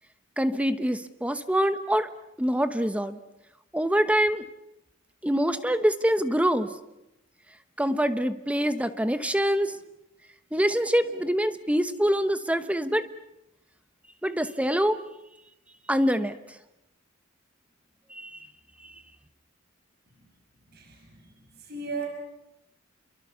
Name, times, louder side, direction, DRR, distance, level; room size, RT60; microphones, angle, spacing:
voice 1, 0.4-2.1 2.4-3.2 3.7-4.5 5.2-6.7 7.8-9.8 10.5-13.1 14.2-15.0 15.9-16.4 18.1-18.4 18.8-18.9, equal, 5° right, 11 dB, 1.0 m, -25 dB
voice 2, 20.7-21.1 21.6-22.1, right 4 dB, 50° right, 2 dB, 6.3 m, -35 dB
30.0 x 23.0 x 6.9 m, 0.90 s
head